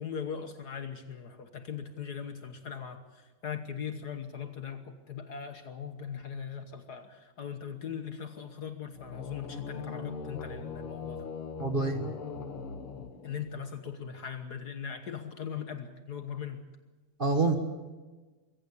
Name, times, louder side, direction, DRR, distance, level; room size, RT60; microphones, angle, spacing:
voice 1, 0.0-11.3 13.2-16.7, left 7 dB, 50° left, 8 dB, 1.6 m, -40 dB
sound 1, 8.9-13.7, left 5 dB, 80° left, 2.3 m, -40 dB
voice 2, 11.6-12.1 17.2-17.6, right 3 dB, 30° right, 4 dB, 1.4 m, -27 dB
22.5 x 15.5 x 8.4 m, 1.3 s
omnidirectional pair, 2.4 m